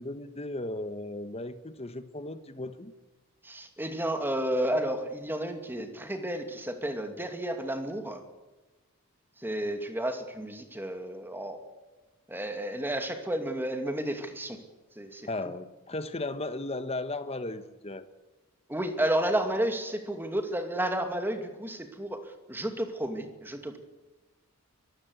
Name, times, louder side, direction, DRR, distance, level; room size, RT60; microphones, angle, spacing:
voice 1, 0.0-2.9 15.2-18.1, left 2 dB, 25° left, 11 dB, 1.2 m, -36 dB
voice 2, 3.4-8.2 9.4-11.6 12.3-14.6 14.9-15.3 18.7-23.8, right 1 dB, 10° right, 6 dB, 2.5 m, -32 dB
23.5 x 15.5 x 8.0 m, 1.1 s
head